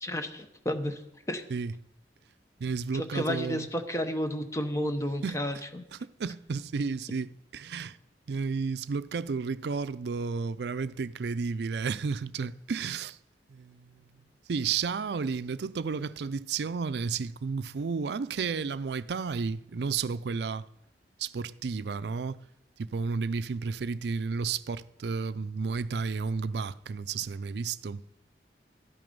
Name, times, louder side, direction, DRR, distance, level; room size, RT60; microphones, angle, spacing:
voice 1, 0.0-1.0 1.3-1.4 2.9-5.8, equal, 15° left, 0.9 m, -32 dB
voice 2, 2.6-3.7 5.2-5.4 5.9-8.0 8.3-13.2 13.5-14.0 14.5-20.7 21.2-22.4 22.8-28.0, right 5 dB, 70° right, 0.4 m, -32 dB
13.0 x 11.0 x 5.3 m
head